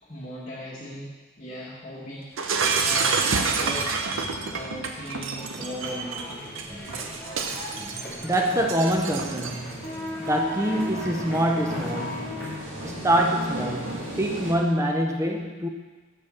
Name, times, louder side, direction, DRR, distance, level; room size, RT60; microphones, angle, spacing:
voice 1, 0.0-1.1 1.4-3.9 4.5-6.4, equal, 35° left, -7 dB, 1.2 m, -38 dB
Shatter, 2.4-9.7, right 4 dB, 65° right, 0.6 m, -28 dB
sound 1, 5.4-12.5, left 1 dB, 10° left, 2.3 m, -37 dB
sound 2, 5.4-14.5, equal, 85° right, 2.1 m, -38 dB
voice 2, 8.2-9.8 10.2-12.3 12.8-15.7, right 1 dB, 15° right, 2 dB, 0.6 m, -25 dB
6.6 x 5.4 x 6.8 m, 1.3 s
head